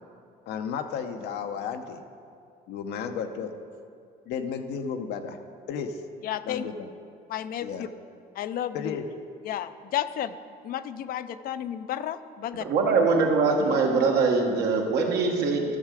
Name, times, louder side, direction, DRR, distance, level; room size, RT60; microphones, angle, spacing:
voice 1, 0.5-2.0 2.7-3.5 4.3-5.4 5.7-6.0 6.4-6.9 7.6-7.9 8.7-9.0, left 6 dB, 80° left, 7 dB, 0.7 m, -33 dB
voice 2, 6.2-6.7 7.3-7.7 8.4-9.0 9.5-10.3 10.6-12.6, left 11 dB, 60° left, 13 dB, 0.4 m, -32 dB
voice 3, 12.5-15.6, right 4 dB, 75° right, 0 dB, 1.5 m, -23 dB
12.5 x 6.6 x 4.8 m, 2.4 s
cardioid pair, 110°, 17 cm